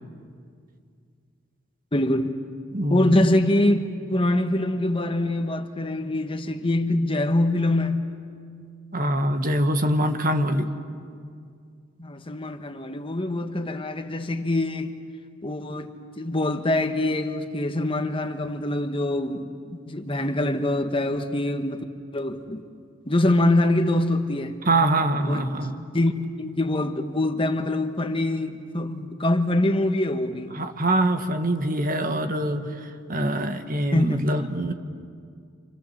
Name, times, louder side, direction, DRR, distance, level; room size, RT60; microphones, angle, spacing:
voice 1, 1.9-2.3 2.9-8.0 12.0-14.9 15.4-19.5 19.9-21.8 22.1-22.6 23.1-24.6 25.3-25.5 25.9-26.1 26.4-30.5 33.9-34.3, left 1 dB, 25° left, 1.2 m, -24 dB
voice 2, 2.7-3.3 8.9-10.7 24.6-25.8 30.5-34.7, right 1 dB, 45° right, 1.6 m, -24 dB
30.0 x 27.0 x 7.3 m
head